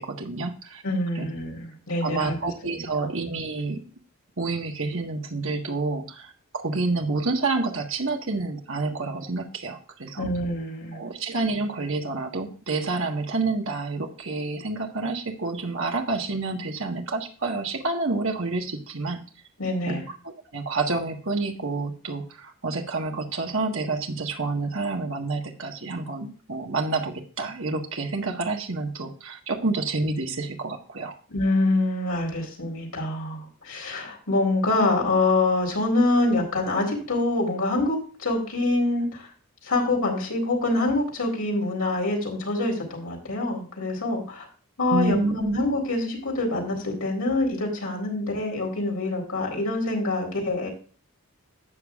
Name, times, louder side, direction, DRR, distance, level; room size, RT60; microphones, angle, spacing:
voice 1, 0.0-0.8 1.1-1.3 2.0-3.8 4.4-10.3 10.9-19.2 19.9-20.0 20.5-31.1 44.9-45.6, right 3 dB, 65° right, 2 dB, 1.6 m, -28 dB
voice 2, 0.8-2.4 10.2-11.0 19.6-20.0 31.3-39.3 39.6-44.5 44.8-50.7, left 2 dB, 85° left, 0 dB, 4.0 m, -25 dB
12.5 x 8.2 x 2.5 m, 0.40 s
head